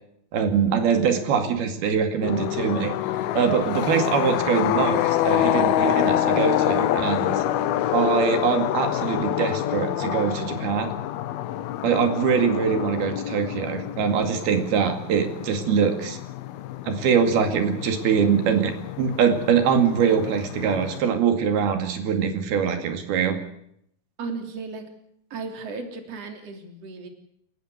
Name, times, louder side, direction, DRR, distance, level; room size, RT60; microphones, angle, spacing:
voice 1, 0.3-2.9 3.3-7.4 7.9-10.9 11.8-16.2 16.8-23.4, right 7 dB, 85° right, 7 dB, 4.2 m, -23 dB
sound 1, 2.2-21.0, left 12 dB, 80° left, 2.9 m, -27 dB
voice 2, 24.2-24.8 25.3-27.1, right 4 dB, 45° right, 6 dB, 4.1 m, -35 dB
28.5 x 15.0 x 8.2 m, 0.72 s
omnidirectional pair, 4.3 m